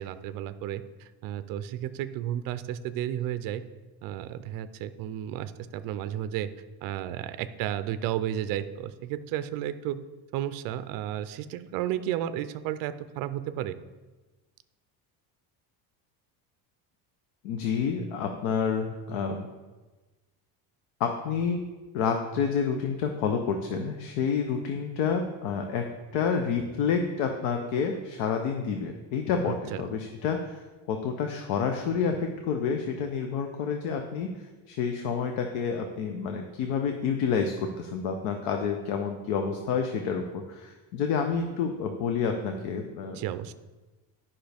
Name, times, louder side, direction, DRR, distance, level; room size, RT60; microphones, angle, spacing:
voice 1, 0.0-3.6 4.0-6.5 6.8-10.0 10.3-13.8 29.5-29.8 43.1-43.5, right 11 dB, 55° right, 12 dB, 0.4 m, -33 dB
voice 2, 17.4-19.5 21.0-21.6 21.9-25.9 26.1-43.2, left 6 dB, 85° left, 4 dB, 0.8 m, -29 dB
10.5 x 5.5 x 3.4 m, 1.2 s
cardioid pair, 175°, 42 cm